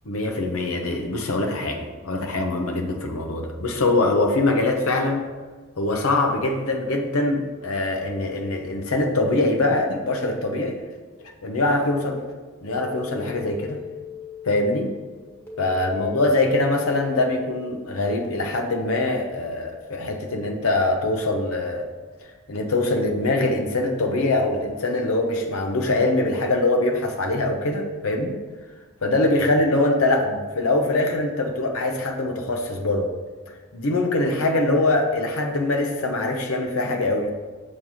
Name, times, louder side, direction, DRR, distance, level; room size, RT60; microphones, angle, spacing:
voice 1, 0.1-5.3 5.8-10.8 11.4-12.2 12.6-13.8 14.4-14.9 15.6-21.8 22.2-28.4 29.0-33.1 33.7-37.3, left 2 dB, 85° left, 3 dB, 0.8 m, -23 dB
sound 1, 12.7-18.3, left 8 dB, 10° left, 1.3 m, -39 dB
7.2 x 3.3 x 6.2 m, 1.4 s
head